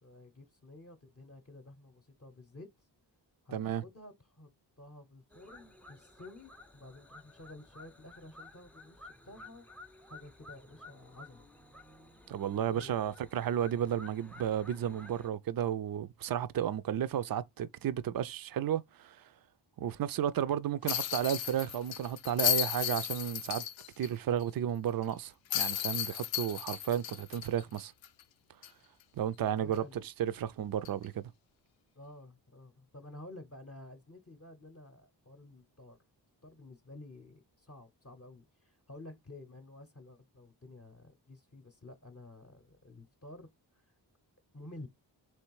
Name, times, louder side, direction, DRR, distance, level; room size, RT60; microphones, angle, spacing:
voice 1, 0.0-2.7 3.4-4.5 4.8-9.7 10.0-11.5 12.7-13.2 29.4-30.1 31.9-36.0 36.4-43.5 44.5-44.9, left 2 dB, 30° left, 0.8 m, -52 dB
voice 2, 3.5-3.8 12.3-19.2 19.8-23.6 24.0-27.9 29.2-31.2, right 10 dB, 50° right, 0.5 m, -33 dB
sound 1, 5.3-15.3, left 2 dB, 5° left, 0.5 m, -54 dB
sound 2, 20.9-24.1 24.4-24.5 25.5-28.2 28.6-28.7 30.8-31.0, left 11 dB, 85° left, 0.5 m, -34 dB
3.3 x 3.3 x 4.6 m
cardioid pair, 65°, 45 cm